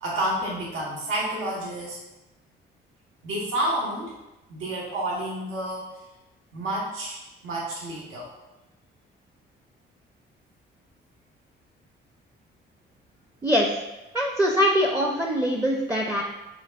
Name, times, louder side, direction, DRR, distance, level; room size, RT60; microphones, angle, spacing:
voice 1, 0.0-2.0 3.2-4.1 4.5-5.9 6.5-8.3, right 1 dB, 85° right, -4 dB, 1.1 m, -30 dB
voice 2, 13.4-13.7 14.1-16.2, equal, 10° right, 0 dB, 0.5 m, -23 dB
6.1 x 2.9 x 2.3 m, 0.99 s
cardioid pair, 90°, 20 cm